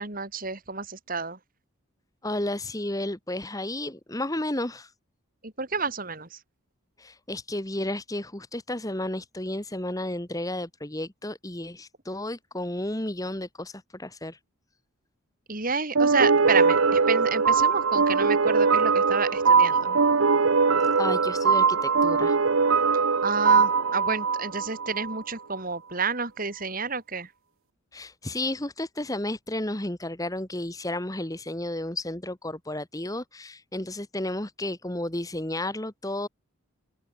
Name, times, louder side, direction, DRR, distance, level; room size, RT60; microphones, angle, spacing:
voice 1, 0.0-1.4 5.4-6.4 15.5-20.0 23.2-27.3, right 5 dB, 40° right, 3.0 m, -30 dB
voice 2, 2.2-4.9 7.0-14.4 21.0-22.4 27.9-36.3, left 1 dB, 15° left, 1.5 m, -32 dB
sound 1, 15.9-25.2, right 5 dB, 70° right, 0.9 m, -21 dB
open air
head